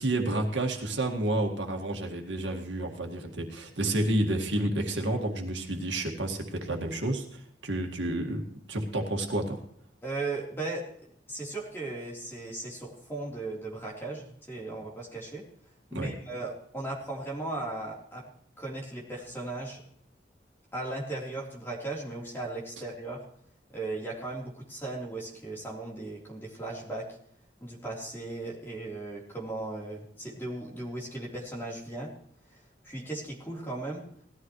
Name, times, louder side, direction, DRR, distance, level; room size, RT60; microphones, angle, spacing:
voice 1, 0.0-8.4 8.7-9.6 15.9-16.1, right 1 dB, 85° right, 3 dB, 2.0 m, -30 dB
voice 2, 10.0-10.8 11.3-15.4 15.9-18.3 18.6-19.8 20.7-23.2 23.7-27.1 27.6-32.1 32.5-34.0, right 2 dB, 15° left, -3 dB, 3.7 m, -37 dB
18.5 x 13.5 x 3.2 m, 0.65 s
head